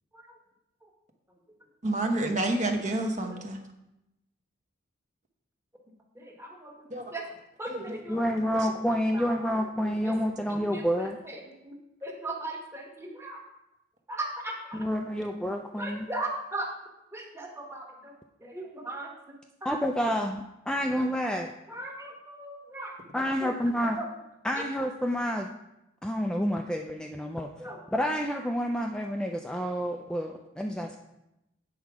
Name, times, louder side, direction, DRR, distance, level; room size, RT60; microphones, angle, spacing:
voice 1, 1.8-3.6 6.9-7.0 7.7-7.9, right 2 dB, 40° right, 4 dB, 1.0 m, -28 dB
voice 2, 6.2-7.2 7.6-8.2 9.1-9.3 9.8-10.1 10.5-11.8 12.0-13.4 14.1-14.8 15.8-16.7 17.1-18.1 18.4-19.1 21.7-22.9 23.4-23.5 24.0-24.1 24.6-24.7 27.6-27.8, right 2 dB, 15° right, 0 dB, 1.3 m, -38 dB
voice 3, 8.1-11.2 14.7-16.1 19.6-21.5 23.1-24.0 24.4-25.5 26.0-31.0, equal, 5° left, 3 dB, 0.4 m, -29 dB
8.4 x 4.6 x 6.1 m, 0.89 s
head